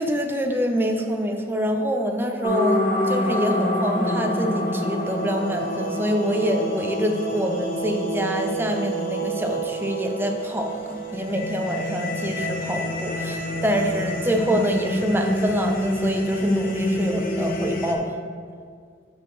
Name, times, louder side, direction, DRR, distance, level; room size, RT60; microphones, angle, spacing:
voice 1, 0.0-18.2, equal, 10° right, 4 dB, 0.5 m, -25 dB
sound 1, 2.4-17.9, equal, 50° left, 0.8 m, -27 dB
12.5 x 4.3 x 3.3 m, 2.1 s
head